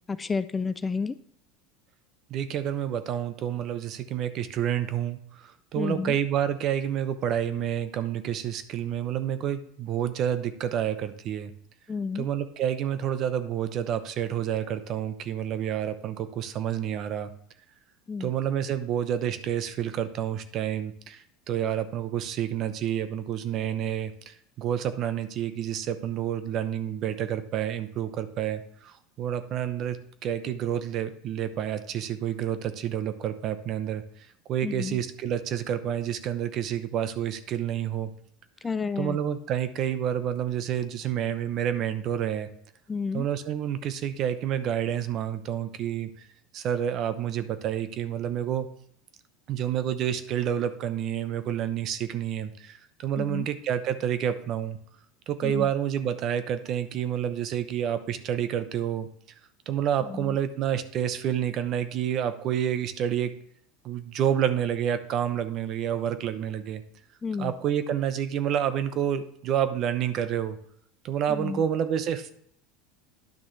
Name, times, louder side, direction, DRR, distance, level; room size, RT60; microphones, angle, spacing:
voice 1, 0.1-1.1 5.8-6.2 11.9-12.3 18.1-18.3 34.6-35.0 38.6-39.2 42.9-43.3 53.2-53.5 55.4-55.7 60.1-60.3 67.2-67.5 71.3-71.6, left 5 dB, 20° left, 13 dB, 0.3 m, -31 dB
voice 2, 2.3-5.2 5.7-11.5 12.1-17.3 18.2-21.2 21.5-24.1 24.6-34.0 34.5-38.1 39.0-42.5 43.1-46.1 46.5-48.7 49.5-54.8 55.3-59.1 59.7-63.3 63.8-66.8 67.4-70.6 71.0-72.3, right 10 dB, 50° right, 12 dB, 0.8 m, -29 dB
10.5 x 6.0 x 3.2 m, 0.67 s
supercardioid pair, 110°, 0 cm